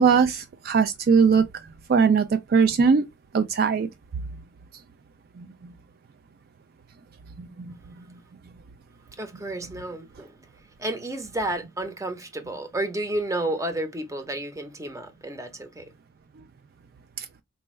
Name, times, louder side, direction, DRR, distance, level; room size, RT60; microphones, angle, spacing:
voice 1, 0.0-1.4 1.9-3.1 3.3-3.9 5.4-5.7 7.4-8.2 17.2-17.3, right 5 dB, 55° right, 0.3 m, -21 dB
voice 2, 9.2-10.4 10.8-15.8, right 1 dB, 15° right, 0.7 m, -31 dB
4.3 x 2.2 x 3.0 m
head